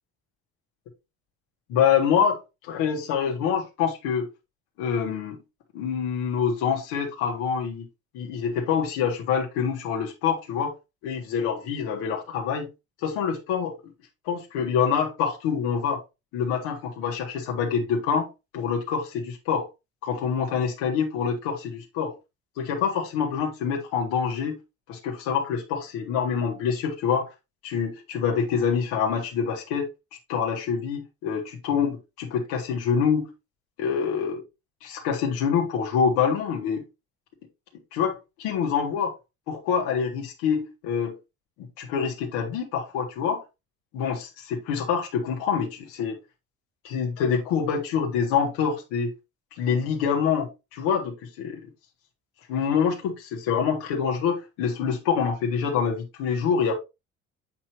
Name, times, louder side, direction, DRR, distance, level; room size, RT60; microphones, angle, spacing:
voice 1, 1.7-4.3 4.8-5.4 5.7-7.8 8.1-10.7 11.0-12.7 13.0-13.8 14.3-16.0 16.3-18.3 18.5-19.7 20.0-22.1 22.6-24.6 24.9-27.3 27.6-29.9 30.3-33.3 33.8-34.4 34.8-36.8 37.9-39.2 39.5-41.2 41.8-43.4 43.9-46.2 46.8-49.1 49.6-51.6 52.5-56.8, left 7 dB, 75° left, 1.8 m, -26 dB
8.6 x 4.4 x 3.0 m
hypercardioid pair, 65°, 39 cm